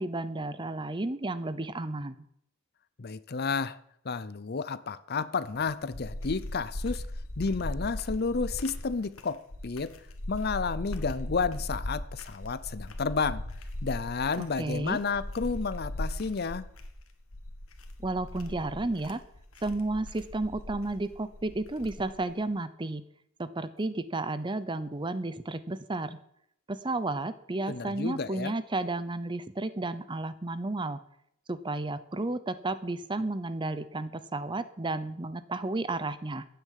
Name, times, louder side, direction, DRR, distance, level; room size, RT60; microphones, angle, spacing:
voice 1, 0.0-2.2 14.4-15.0 18.0-19.2 19.6-23.0 23.4-26.2 26.7-31.0 31.5-36.5, right 2 dB, 20° right, 0.7 m, -32 dB
voice 2, 3.0-3.8 4.0-7.0 7.4-10.0 10.3-13.4 13.8-16.7 27.7-28.5, left 4 dB, 45° left, 0.6 m, -31 dB
sound 1, 5.5-22.3, left 1 dB, 75° left, 1.8 m, -39 dB
12.5 x 9.5 x 7.5 m
head